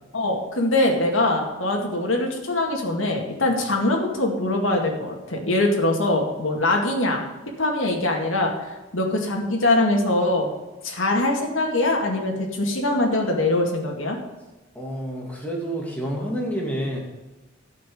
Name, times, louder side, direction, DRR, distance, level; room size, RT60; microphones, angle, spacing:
voice 1, 0.1-7.2 7.6-8.5 8.9-10.5 10.8-14.2, left 2 dB, 85° left, 1 dB, 2.1 m, -22 dB
voice 2, 14.7-17.0, right 1 dB, 5° left, -2 dB, 2.5 m, -28 dB
12.0 x 5.7 x 7.1 m, 1.1 s
head